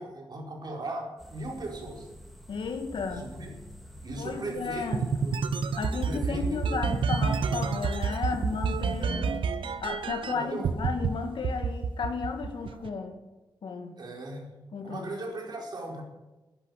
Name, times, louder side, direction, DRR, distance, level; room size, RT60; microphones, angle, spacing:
voice 1, 0.0-2.1 3.1-3.6 4.0-5.3 5.9-6.6 9.0-9.4 10.3-10.7 14.0-14.6 14.8-16.0, right 2 dB, 55° right, 0 dB, 4.5 m, -38 dB
sound 1, 1.2-9.1, right 1 dB, ahead, 3.5 m, -45 dB
voice 2, 2.5-3.2 4.2-5.0 5.8-9.5 9.8-13.1 13.6-14.0 14.7-15.1, left 5 dB, 80° left, 4 dB, 2.4 m, -34 dB
sound 2, 4.9-10.3 10.6-11.1 11.4-12.9, right 5 dB, 85° right, 0.9 m, -28 dB
11.5 x 11.0 x 8.4 m, 1.1 s
cardioid pair, 80°, 8 cm